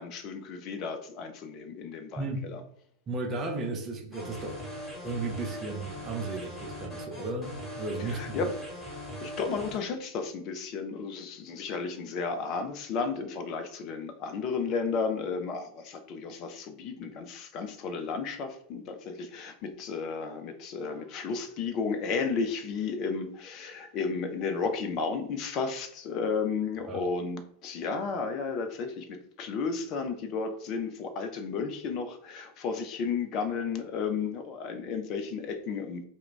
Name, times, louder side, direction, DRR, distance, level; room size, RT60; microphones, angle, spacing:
voice 1, 0.0-2.6 8.0-8.5 9.2-36.1, left 5 dB, 40° left, 0.4 m, -33 dB
voice 2, 2.2-2.5 3.1-4.6 5.0-8.4 26.9-27.0, right 3 dB, 25° right, 0.5 m, -34 dB
sound 1, 4.1-9.8, equal, 10° left, 1.3 m, -40 dB
2.2 x 2.2 x 3.6 m
figure-of-eight pair, 90°, 0 cm